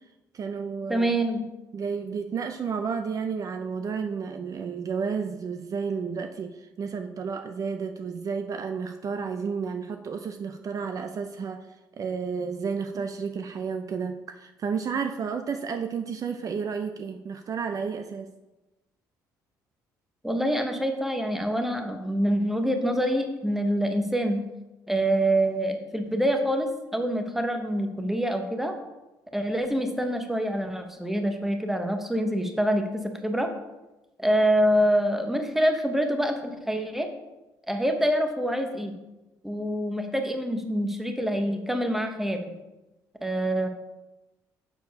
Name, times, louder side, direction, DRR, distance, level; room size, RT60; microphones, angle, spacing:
voice 1, 0.3-1.1 1.7-11.7 12.0-18.3, right 6 dB, 45° right, 6 dB, 0.5 m, -31 dB
voice 2, 0.9-1.4 20.2-24.4 24.9-28.8 29.3-33.5 34.2-37.1 37.7-38.9 39.4-42.4 43.2-43.7, equal, 5° right, 5 dB, 1.0 m, -26 dB
6.9 x 4.5 x 5.2 m, 1.0 s
cardioid pair, 85°, 8 cm